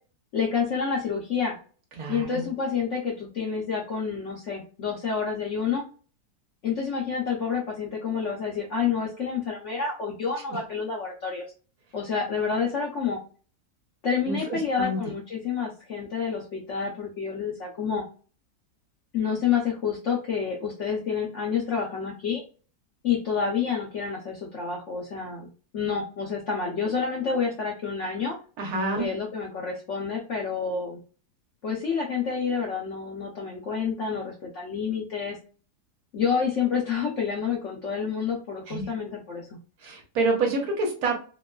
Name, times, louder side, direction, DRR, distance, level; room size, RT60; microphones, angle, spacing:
voice 1, 0.3-1.5 2.1-5.9 6.6-11.4 11.9-13.2 14.0-18.0 19.1-22.4 23.0-25.5 25.7-28.4 29.0-31.0 31.6-35.4 36.1-39.5, left 6 dB, 70° left, -2 dB, 0.7 m, -28 dB
voice 2, 2.0-2.5 10.5-10.6 14.2-15.0 28.6-29.1 38.7-39.0 39.8-41.1, right 3 dB, 65° right, 1 dB, 1.2 m, -28 dB
2.9 x 2.2 x 2.2 m, 0.38 s
omnidirectional pair, 1.8 m